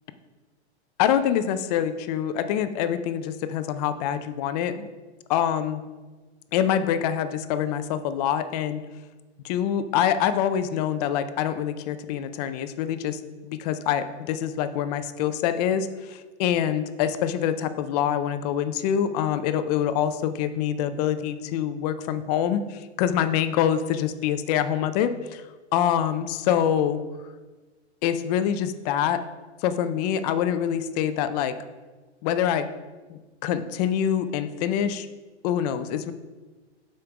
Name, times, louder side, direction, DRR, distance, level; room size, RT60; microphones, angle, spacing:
voice 1, 1.0-4.9 5.3-5.8 6.5-8.8 9.4-25.4 25.7-27.0 28.0-29.2 29.6-31.6 32.2-32.7 33.1-35.1 35.4-36.1, left 9 dB, 35° left, 11 dB, 0.5 m, -25 dB
6.6 x 5.2 x 4.8 m, 1.3 s
hypercardioid pair, 135°, 34 cm